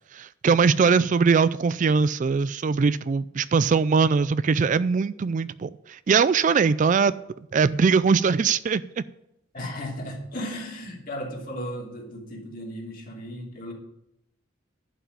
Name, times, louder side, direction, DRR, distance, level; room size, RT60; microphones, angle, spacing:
voice 1, 0.1-7.1 7.5-8.8, right 5 dB, 40° right, 17 dB, 0.3 m, -21 dB
voice 2, 9.5-13.7, equal, 45° left, 0 dB, 2.9 m, -35 dB
11.0 x 5.9 x 8.7 m, 0.82 s
head